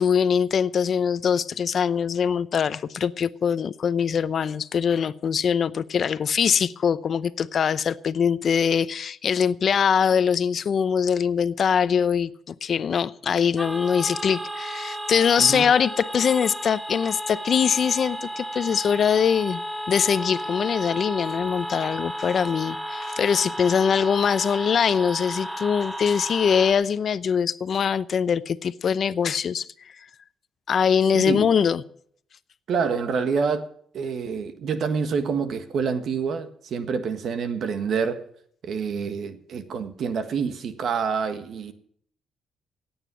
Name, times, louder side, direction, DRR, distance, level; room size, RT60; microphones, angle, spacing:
voice 1, 0.0-19.6 19.9-29.7 30.7-31.8, left 7 dB, 55° left, 0.7 m, -23 dB
sound 1, 13.6-26.7, equal, 5° right, 1.3 m, -33 dB
voice 2, 31.1-31.5 32.7-33.7 33.9-38.2 38.6-41.7, right 6 dB, 65° right, 1.6 m, -27 dB
17.0 x 8.9 x 6.2 m
cardioid pair, 90°, 0 cm